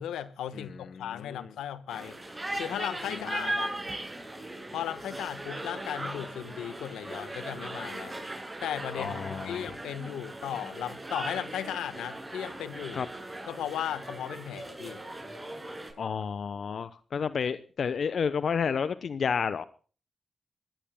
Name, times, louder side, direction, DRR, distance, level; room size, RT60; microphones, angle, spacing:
voice 1, 0.0-2.2 2.6-3.7 4.7-8.1 8.6-13.0 13.5-15.0, left 10 dB, 90° left, 13 dB, 1.2 m, -36 dB
voice 2, 0.5-1.5 3.1-3.5 8.9-9.8 12.9-13.1 16.0-19.6, left 6 dB, 70° left, 14 dB, 0.8 m, -31 dB
sound 1, 1.9-15.9, right 1 dB, 25° right, 7.5 m, -38 dB
25.0 x 18.5 x 2.2 m, 0.39 s
supercardioid pair, 40°, 0 cm